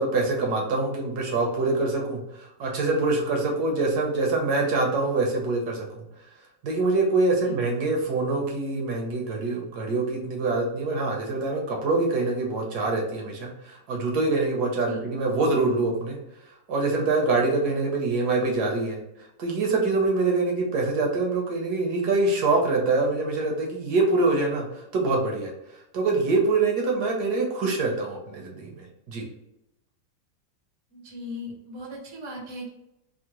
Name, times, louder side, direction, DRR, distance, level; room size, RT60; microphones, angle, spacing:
voice 1, 0.0-5.9 6.6-16.2 16.7-19.0 19.4-25.5 25.9-29.2, right 3 dB, 70° right, 0 dB, 1.1 m, -25 dB
voice 2, 30.9-32.7, left 1 dB, 35° right, -3 dB, 0.4 m, -38 dB
3.6 x 2.1 x 2.9 m, 0.85 s
omnidirectional pair, 2.0 m